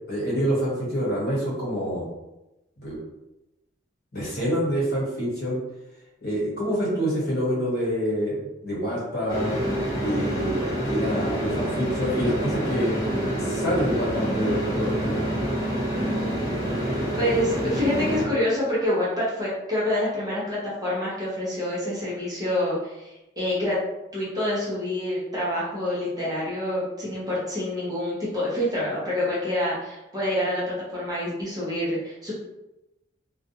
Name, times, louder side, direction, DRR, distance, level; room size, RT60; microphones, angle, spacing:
voice 1, 0.1-2.1 2.8-3.0 4.1-5.6 6.2-9.6 10.0-13.1 13.4-15.3, equal, 55° left, -7 dB, 1.1 m, -27 dB
sound 1, 9.3-18.3, equal, 20° left, 0.8 m, -27 dB
voice 2, 17.2-23.8 24.1-30.6 30.9-32.3, left 1 dB, 20° right, -8 dB, 0.7 m, -27 dB
2.3 x 2.2 x 2.8 m, 0.95 s
head